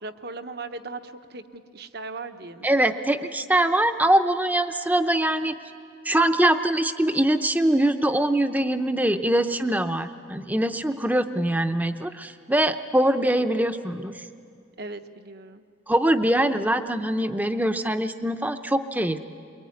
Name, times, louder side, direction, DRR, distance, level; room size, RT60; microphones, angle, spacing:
voice 1, 0.0-2.7 14.8-15.6, right 3 dB, 50° right, 8 dB, 1.0 m, -38 dB
voice 2, 2.6-5.6 6.0-14.2 15.9-19.2, right 1 dB, 10° right, 9 dB, 0.7 m, -23 dB
23.0 x 23.0 x 9.5 m, 2.4 s
head